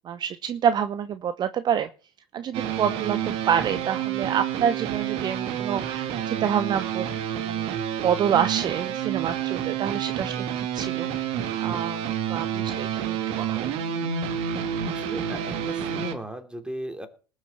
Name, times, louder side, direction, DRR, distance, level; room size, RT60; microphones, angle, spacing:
voice 1, 0.0-1.9 2.3-7.1 7.4-7.8 8.0-11.3 11.6-12.0 12.3-13.7, right 8 dB, 35° right, 12 dB, 0.9 m, -27 dB
sound 1, 2.5-16.1, right 9 dB, 55° right, 2.0 m, -29 dB
voice 2, 14.9-17.1, equal, 5° right, 6 dB, 3.1 m, -36 dB
19.5 x 7.4 x 6.6 m, 0.38 s
hypercardioid pair, 75°, 12 cm